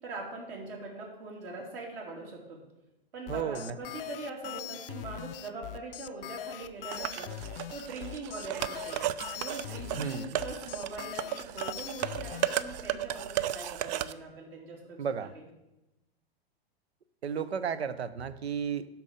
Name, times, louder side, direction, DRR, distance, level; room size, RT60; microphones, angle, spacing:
voice 1, 0.0-2.6 3.1-7.3 7.7-9.0 9.3-15.4, right 3 dB, 65° right, -2 dB, 3.4 m, -42 dB
sound 1, 3.3-12.6, left 13 dB, 65° left, 0.5 m, -41 dB
voice 2, 3.3-3.8 9.9-10.4 15.0-15.3 17.2-18.9, right 7 dB, 80° right, 14 dB, 0.7 m, -33 dB
sound 2, 6.9-14.1, right 12 dB, 45° right, 0.4 m, -35 dB
12.0 x 4.4 x 5.2 m, 0.97 s
hypercardioid pair, 105°, 31 cm